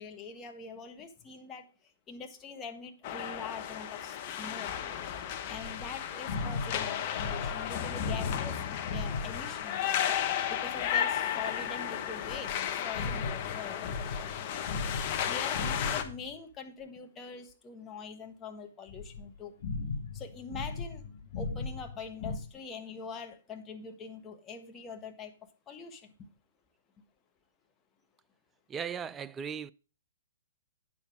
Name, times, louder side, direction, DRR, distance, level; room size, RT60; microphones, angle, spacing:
voice 1, 0.0-1.6 2.1-4.7 5.5-9.8 10.5-14.6 15.2-19.5 20.1-21.0 21.3-25.3 25.7-26.1, left 5 dB, 20° left, 1.4 m, -44 dB
sound 1, 3.0-16.0, left 9 dB, 40° left, 1.1 m, -34 dB
sound 2, 5.5-9.7 12.2-16.3 18.9-22.4, left 3 dB, 55° left, 1.7 m, -38 dB
voice 2, 28.7-29.7, right 7 dB, 15° right, 0.4 m, -37 dB
9.1 x 7.0 x 4.8 m
hypercardioid pair, 125°, 0 cm